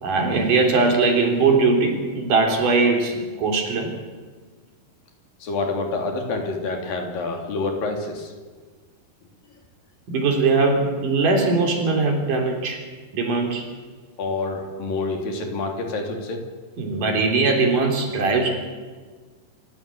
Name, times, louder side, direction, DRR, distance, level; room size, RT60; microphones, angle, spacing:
voice 1, 0.0-3.9 10.1-12.8 13.1-13.7 16.8-18.5, right 3 dB, 65° right, 3 dB, 4.9 m, -20 dB
voice 2, 5.4-8.3 14.2-16.4, left 3 dB, 75° left, 3 dB, 4.9 m, -27 dB
27.0 x 15.5 x 8.6 m, 1.4 s
omnidirectional pair, 4.0 m